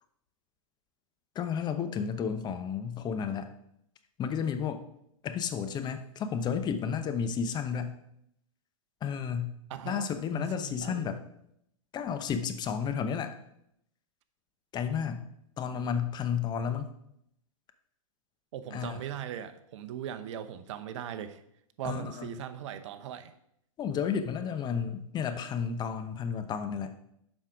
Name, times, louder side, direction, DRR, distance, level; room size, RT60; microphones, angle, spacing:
voice 1, 1.3-3.5 4.2-4.8 5.2-7.9 9.0-9.5 9.9-11.2 11.9-13.3 14.7-15.2 15.6-16.9 18.7-19.0 21.8-22.3 23.8-26.9, left 7 dB, 25° left, 9 dB, 0.7 m, -32 dB
voice 2, 9.7-11.1 18.5-21.4 21.8-23.3, right 10 dB, 60° right, 10 dB, 0.8 m, -39 dB
7.4 x 5.4 x 5.0 m, 0.76 s
hypercardioid pair, 115°, 18 cm